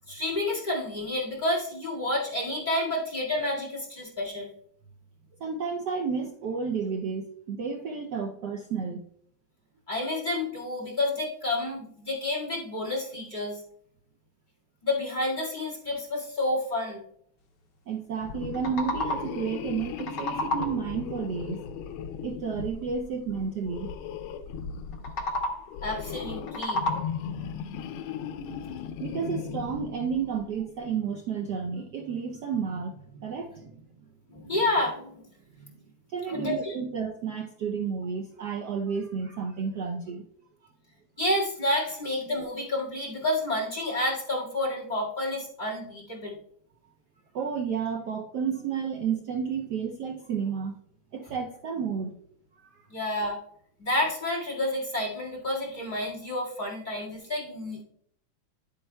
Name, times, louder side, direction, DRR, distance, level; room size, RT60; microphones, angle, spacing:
voice 1, 0.1-4.5 9.9-13.6 14.8-17.0 25.8-26.8 34.3-35.2 36.3-36.7 41.2-46.4 52.9-53.4 53.8-57.8, left 1 dB, 25° left, -2 dB, 2.0 m, -29 dB
voice 2, 5.4-9.0 17.9-21.6 22.2-23.9 29.0-33.8 35.6-35.8 36.1-40.2 47.3-50.7 51.1-52.1 52.6-52.8, right 6 dB, 65° right, 2 dB, 1.1 m, -31 dB
sound 1, 18.2-30.7, left 7 dB, 85° left, 1.4 m, -37 dB
sound 2, 18.3-19.5 19.8-21.0 24.9-25.8 26.3-27.4, left 1 dB, 65° left, 1.6 m, -32 dB
10.0 x 8.7 x 2.2 m, 0.69 s
omnidirectional pair, 2.2 m